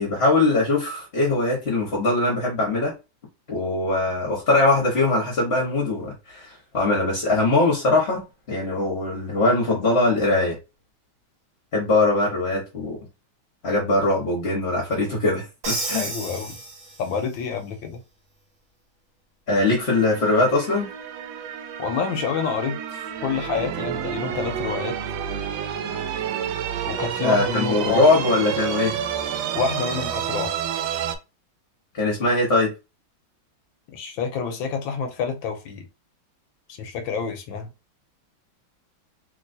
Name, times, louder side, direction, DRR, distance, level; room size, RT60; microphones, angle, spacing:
voice 1, 0.0-2.9 3.5-8.2 8.5-10.6 11.7-13.0 13.6-16.1 19.5-20.9 27.2-29.0 31.9-32.7, left 2 dB, 45° left, 0.9 m, -21 dB
Crash cymbal, 15.6-17.4, right 2 dB, 50° right, 1.1 m, -31 dB
voice 2, 15.9-16.6 17.0-18.0 21.8-22.8 23.2-25.0 26.8-28.0 29.5-30.5 33.9-35.8 36.8-37.7, left 6 dB, 80° left, 1.4 m, -28 dB
sound 1, 19.9-31.2, right 9 dB, 75° right, 1.2 m, -29 dB
3.2 x 3.0 x 2.6 m
omnidirectional pair, 2.2 m